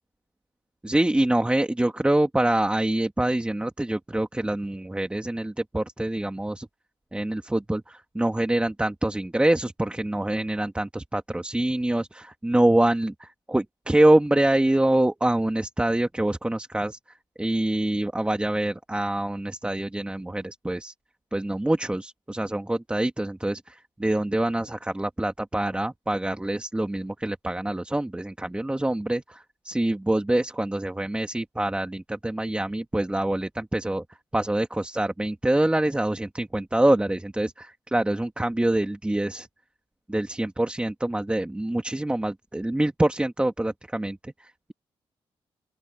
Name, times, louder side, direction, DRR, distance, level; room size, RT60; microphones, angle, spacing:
voice 1, 0.8-6.7 7.1-17.0 17.4-20.9 21.3-34.0 34.3-39.5 40.1-44.7, right 1 dB, 10° right, 2.2 m, -25 dB
open air
cardioid pair, 90°, 11 cm